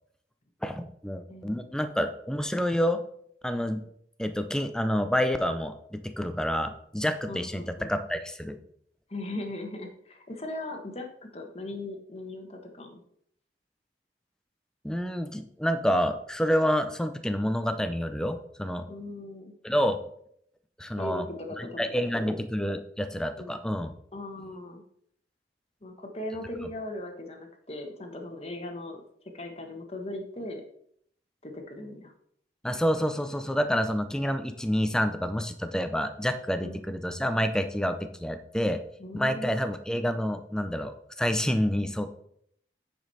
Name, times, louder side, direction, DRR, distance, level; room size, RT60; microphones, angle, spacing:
voice 1, 0.6-3.0 3.4-3.8 4.2-8.6 14.8-18.9 19.6-20.0 20.8-21.3 21.6-23.9 32.6-38.8 39.1-42.2, equal, 5° left, 8 dB, 0.6 m, -28 dB
voice 2, 1.3-1.6 7.3-7.9 9.1-13.0 18.9-19.5 21.0-21.8 22.1-22.4 23.4-23.6 24.1-24.8 25.8-29.0 29.3-30.6 31.4-32.1 36.6-36.8 39.0-39.6, left 1 dB, 35° left, 4 dB, 1.3 m, -38 dB
9.4 x 5.2 x 4.2 m, 0.68 s
head